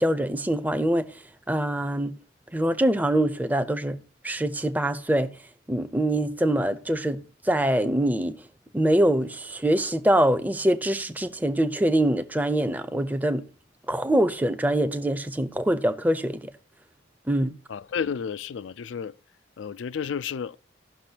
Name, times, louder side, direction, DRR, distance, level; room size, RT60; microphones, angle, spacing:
voice 1, 0.0-2.1 2.5-4.0 4.2-5.4 5.7-8.5 8.7-13.5 13.9-16.5 17.3-17.6, right 1 dB, 10° right, 0.5 m, -24 dB
voice 2, 17.7-19.2 19.6-20.6, left 7 dB, 80° left, 0.4 m, -31 dB
16.5 x 6.0 x 2.8 m
head